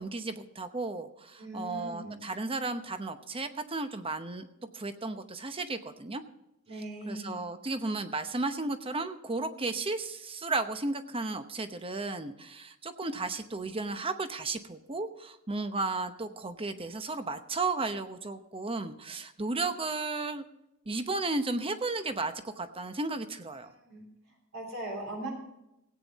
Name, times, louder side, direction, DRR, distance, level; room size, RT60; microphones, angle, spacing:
voice 1, 0.0-4.5 4.7-6.2 7.1-20.4 20.9-23.7, right 3 dB, 25° right, 9 dB, 0.9 m, -34 dB
voice 2, 1.4-2.3 6.7-7.4 23.6-24.1 24.5-25.3, right 1 dB, 70° right, 0 dB, 3.6 m, -40 dB
17.5 x 9.1 x 4.1 m, 0.88 s
head